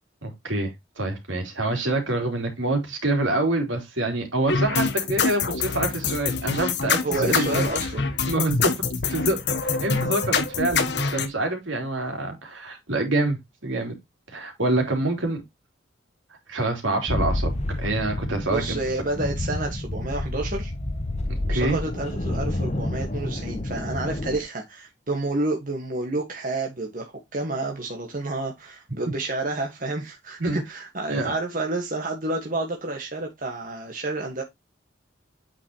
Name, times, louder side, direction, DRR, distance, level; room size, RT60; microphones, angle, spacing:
voice 1, 0.2-7.6 8.3-13.9 14.3-15.4 16.5-17.5 17.8-18.8 21.3-21.8 30.4-30.6 31.1-31.3, right 2 dB, 80° right, 3.4 m, -26 dB
sound 1, 4.5-11.3, left 5 dB, 60° left, 1.2 m, -25 dB
voice 2, 7.0-8.1 18.5-20.7 21.5-34.4, right 2 dB, 45° right, 1.7 m, -29 dB
sound 2, 17.1-24.4, left 1 dB, 35° left, 1.0 m, -29 dB
8.7 x 6.2 x 3.0 m
head